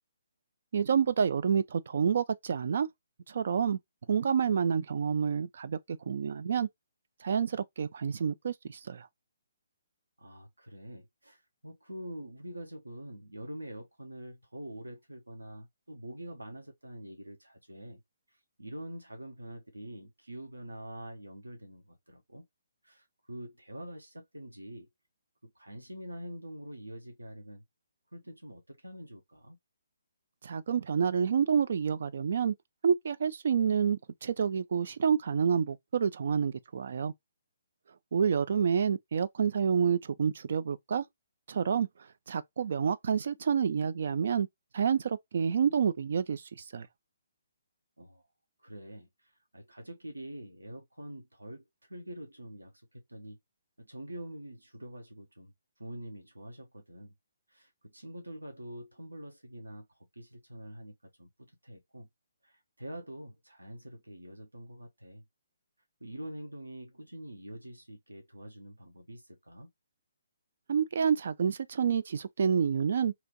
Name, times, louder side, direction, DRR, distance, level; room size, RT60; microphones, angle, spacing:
voice 1, 0.7-2.9 3.3-3.8 4.1-5.8 6.1-6.7 7.2-9.1 30.4-32.5 32.8-37.1 38.1-41.0 41.5-41.9 42.3-44.5 44.7-46.4 46.7-46.9 70.7-73.1, right 7 dB, 50° right, 0.3 m, -28 dB
voice 2, 10.2-18.0 18.3-22.4 22.8-24.9 25.4-27.6 28.1-29.6 48.0-48.3 48.6-53.4 53.8-57.1 57.5-62.1 62.4-65.2 66.0-69.7, right 1 dB, 75° right, 0.9 m, -45 dB
2.9 x 2.5 x 3.7 m
figure-of-eight pair, 135°, 0 cm